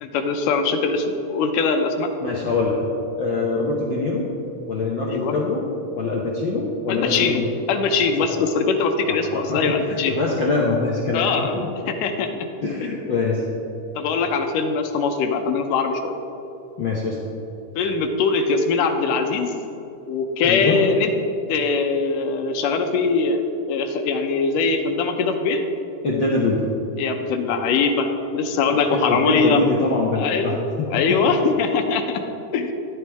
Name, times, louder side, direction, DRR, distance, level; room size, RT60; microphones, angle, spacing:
voice 1, 0.0-2.1 5.1-5.3 6.9-10.2 11.1-11.6 11.9-12.5 12.8-13.0 14.0-16.2 17.8-19.5 20.1-21.1 21.5-23.4 23.7-25.6 27.0-29.6 30.2-30.6 30.9-32.2 32.5-32.7, left 4 dB, 85° left, 5 dB, 2.5 m, -22 dB
voice 2, 2.2-2.8 3.2-4.3 4.7-5.6 5.9-7.5 9.1-9.2 9.5-9.6 9.9-11.7 12.6-13.4 16.8-17.2 20.4-20.8 26.0-26.6 28.7-30.6 30.9-31.3, left 3 dB, 60° left, -3 dB, 1.2 m, -23 dB
14.5 x 11.0 x 3.6 m, 2.9 s
omnidirectional pair, 3.7 m